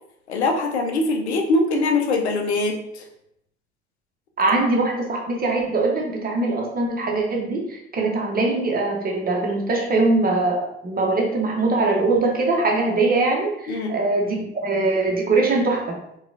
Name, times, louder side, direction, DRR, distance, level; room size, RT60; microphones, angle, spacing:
voice 1, 0.3-3.1 13.7-14.0, left 2 dB, 80° left, 2 dB, 0.5 m, -22 dB
voice 2, 4.4-15.9, right 3 dB, 25° right, 0 dB, 0.9 m, -22 dB
4.7 x 2.4 x 2.5 m, 0.77 s
figure-of-eight pair, 55°, 33 cm